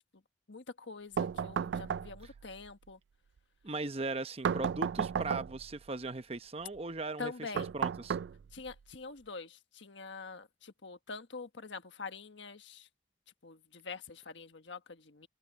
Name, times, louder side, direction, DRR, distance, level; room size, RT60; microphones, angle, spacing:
voice 1, 0.5-3.0 7.2-7.7 8.5-12.9 13.4-15.3, left 4 dB, 85° left, 1.4 m, -45 dB
sound 1, 1.2-2.4 4.4-5.7 7.6-8.7, right 7 dB, 75° right, 0.3 m, -34 dB
voice 2, 3.6-8.2, right 3 dB, 35° right, 0.9 m, -38 dB
head